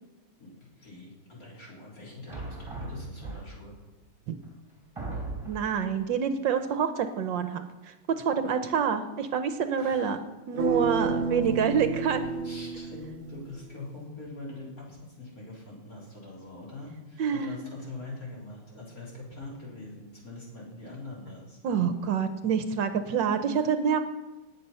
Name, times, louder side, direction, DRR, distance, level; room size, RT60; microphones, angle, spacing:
voice 1, 0.4-3.7 9.8-10.2 12.4-21.6 23.5-23.7, left 2 dB, 45° left, -4 dB, 4.2 m, -43 dB
sound 1, 2.3-3.8 4.4-4.5 5.0-5.8, right 2 dB, 15° right, 3.3 m, -37 dB
voice 2, 5.4-10.2 10.5-12.2 17.2-17.6 21.6-24.0, right 7 dB, 70° right, 9 dB, 1.5 m, -27 dB
sound 2, 10.6-13.6, right 4 dB, 55° right, 0.7 m, -31 dB
19.0 x 8.1 x 5.6 m, 1.1 s
omnidirectional pair, 2.2 m